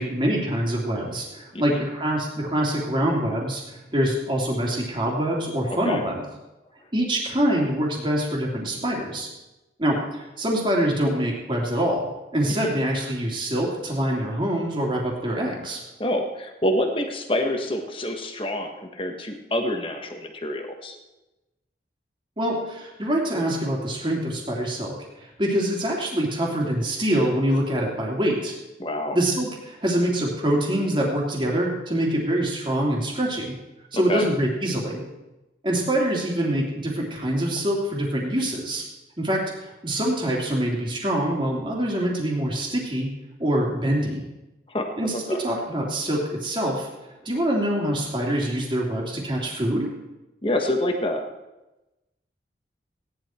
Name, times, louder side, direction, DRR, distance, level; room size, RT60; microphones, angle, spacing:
voice 1, 0.0-6.2 6.9-9.3 9.8-12.1 12.3-15.8 22.4-25.0 25.4-28.5 29.1-33.5 33.9-35.0 35.6-38.8 39.2-43.1 43.4-44.2 45.0-46.9 47.2-49.9, right 1 dB, 25° right, -2 dB, 2.9 m, -25 dB
voice 2, 1.5-1.8 5.8-6.0 12.5-12.7 16.0-20.9 28.8-29.2 33.9-34.3 44.7-44.9 45.3-45.4 50.4-51.2, left 1 dB, 30° left, 4 dB, 1.5 m, -27 dB
17.0 x 10.5 x 4.5 m, 1.0 s
head